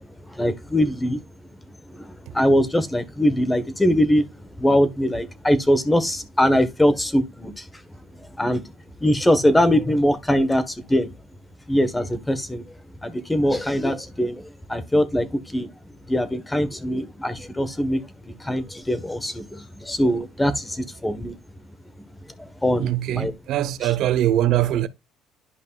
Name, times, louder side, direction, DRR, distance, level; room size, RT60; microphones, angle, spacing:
voice 1, 0.3-1.2 1.9-4.3 4.6-7.7 8.2-8.6 9.0-11.1 11.7-12.7 13.0-15.7 16.1-21.3 22.4-23.3, equal, 10° left, 1.3 m, -22 dB
voice 2, 22.8-24.9, right 12 dB, 65° right, 0.8 m, -22 dB
11.5 x 5.3 x 2.4 m
supercardioid pair, 90°, 0 cm